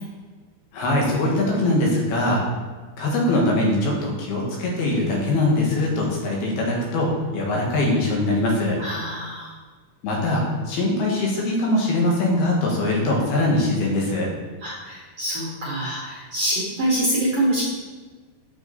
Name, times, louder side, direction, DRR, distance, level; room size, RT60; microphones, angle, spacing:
voice 1, 0.7-2.4 3.0-8.8 10.0-14.3, left 1 dB, 75° left, -2 dB, 3.5 m, -22 dB
voice 2, 8.8-9.5 14.6-17.6, right 1 dB, 70° right, -5 dB, 1.4 m, -25 dB
8.6 x 6.8 x 4.1 m, 1.4 s
omnidirectional pair, 4.5 m